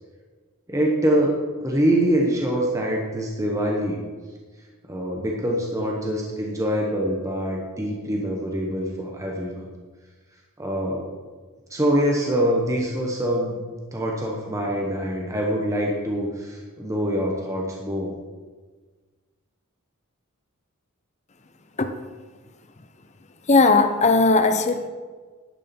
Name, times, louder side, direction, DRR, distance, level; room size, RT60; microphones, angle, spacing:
voice 1, 0.7-4.0 4.9-9.7 10.6-11.1 11.7-13.6 13.9-18.1, equal, 15° right, -1 dB, 1.2 m, -24 dB
voice 2, 23.5-24.9, left 3 dB, 35° left, 8 dB, 0.7 m, -17 dB
11.0 x 8.8 x 4.4 m, 1.4 s
head